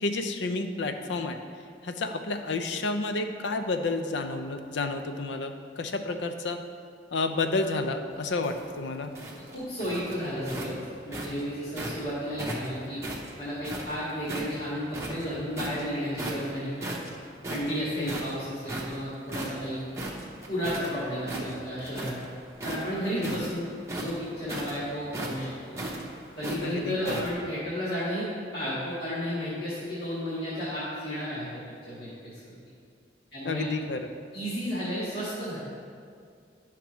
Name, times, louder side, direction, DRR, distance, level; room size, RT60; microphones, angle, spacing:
voice 1, 0.0-1.4 1.8-6.6 7.1-9.1 18.0-18.1 23.2-23.4 26.6-27.3 33.4-34.1, left 3 dB, 90° left, 7 dB, 0.5 m, -30 dB
sound 1, 8.2-12.0 12.4-14.5 14.9-15.8 16.2-16.5 16.8-20.9 21.2-22.3 22.5-27.3, right 1 dB, 15° right, 0.8 m, -36 dB
voice 2, 9.5-10.8 11.0-13.0 13.4-16.9 17.5-19.8 20.5-22.1 22.6-25.8 26.4-32.6 33.3-33.7 34.3-35.6, equal, 60° left, -10 dB, 1.9 m, -33 dB
10.0 x 5.9 x 3.1 m, 2.2 s
head